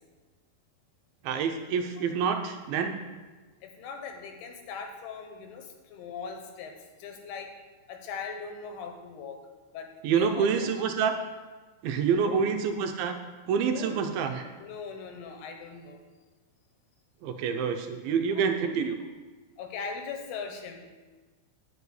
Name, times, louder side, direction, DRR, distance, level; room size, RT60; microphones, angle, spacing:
voice 1, 1.2-3.0 10.0-11.1 11.8-13.2 13.5-14.5 17.2-19.0, right 6 dB, 80° right, 5 dB, 2.4 m, -27 dB
voice 2, 3.6-6.7 7.0-7.5 7.9-9.4 9.7-10.7 12.2-12.4 13.7-14.0 14.6-16.0 19.6-20.9, left 5 dB, 85° left, 4 dB, 3.1 m, -40 dB
10.0 x 5.0 x 8.1 m, 1.3 s
omnidirectional pair, 4.5 m